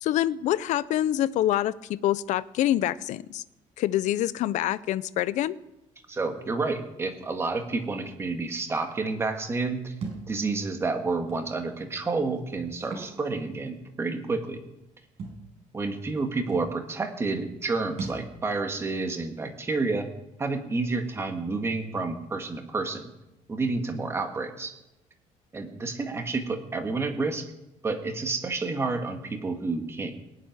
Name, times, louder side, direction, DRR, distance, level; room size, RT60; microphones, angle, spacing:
voice 1, 0.0-3.4 3.8-5.6, left 13 dB, 60° left, 17 dB, 0.6 m, -26 dB
voice 2, 6.1-9.9 10.3-14.6 15.7-20.1 20.4-23.1 23.5-24.7 25.5-27.5 27.8-30.2, right 3 dB, 20° right, 5 dB, 1.6 m, -30 dB
Thump thud, 10.0-10.3 11.3-11.4 12.8-13.1 13.5-13.6 15.2-15.4 16.2-16.3 16.5-16.7 18.0-18.3, right 3 dB, 45° right, 5.5 m, -36 dB
20.0 x 7.5 x 9.5 m, 0.91 s
cardioid pair, 165°, 14 cm